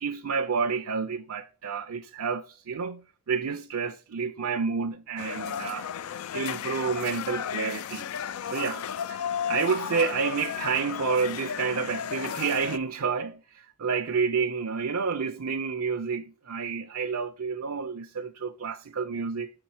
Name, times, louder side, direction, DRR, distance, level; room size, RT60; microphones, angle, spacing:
voice 1, 0.0-5.9 6.3-8.1 8.5-19.5, right 5 dB, 85° right, 0.6 m, -29 dB
sound 1, 5.2-12.8, left 8 dB, 75° left, 0.3 m, -34 dB
6.2 x 4.4 x 4.3 m
head